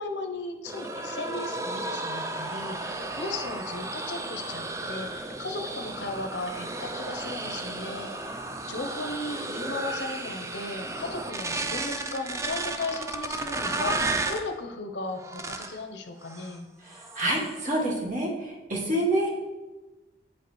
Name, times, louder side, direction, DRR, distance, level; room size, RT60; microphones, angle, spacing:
voice 1, 0.0-8.4 8.7-16.7, left 3 dB, 85° left, 5 dB, 0.7 m, -36 dB
sound 1, 0.7-14.5 15.2-15.8 16.2-16.6 16.9-17.6, right 2 dB, 15° right, 0.3 m, -33 dB
voice 2, 16.8-19.3, right 1 dB, 45° right, -2 dB, 1.4 m, -27 dB
8.7 x 5.2 x 3.1 m, 1.1 s
head